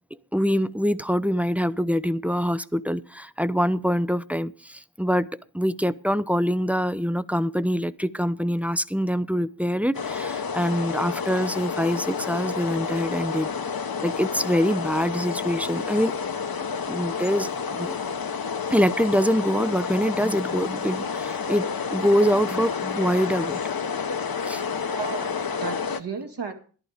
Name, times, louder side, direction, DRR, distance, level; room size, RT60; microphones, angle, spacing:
voice 1, 0.3-5.3 5.5-13.5 14.0-16.1 16.9-18.0 18.7-23.6 24.4-24.6, equal, 5° right, 0.5 m, -24 dB
sound 1, 9.9-26.0, left 6 dB, 55° left, 1.0 m, -30 dB
voice 2, 24.9-26.5, right 5 dB, 65° right, 2.3 m, -34 dB
12.0 x 11.0 x 5.0 m
cardioid pair, 50°, 44 cm